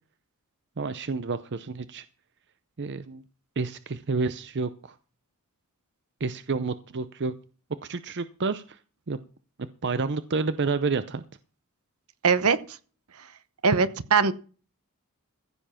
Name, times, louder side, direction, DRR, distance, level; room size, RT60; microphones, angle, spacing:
voice 1, 0.8-2.0 2.8-3.2 3.6-4.9 6.2-7.3 7.8-8.8 9.1-9.2 9.6-11.2, right 4 dB, 55° right, 0.7 m, -29 dB
voice 2, 12.2-12.6 13.6-14.3, right 5 dB, 75° right, 1.0 m, -21 dB
15.0 x 7.1 x 5.8 m
head